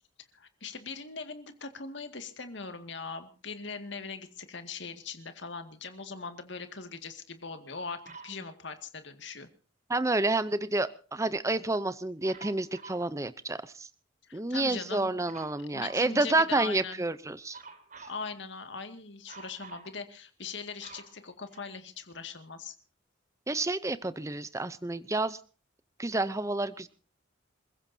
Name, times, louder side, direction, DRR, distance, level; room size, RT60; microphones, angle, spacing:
voice 1, 0.3-9.5 14.2-15.3 15.6-17.0 18.1-22.7, left 4 dB, 60° left, 7 dB, 2.2 m, -41 dB
Dog, 8.0-8.4 12.2-13.1 15.2-16.1 17.5-18.2 19.3-19.9 20.4-22.0 22.7-22.8, right 4 dB, 40° right, 3.8 m, -48 dB
voice 2, 9.9-13.9 14.3-17.6 23.5-25.4 26.0-26.9, right 2 dB, 15° right, 14 dB, 0.7 m, -29 dB
27.5 x 15.5 x 2.8 m, 0.38 s
head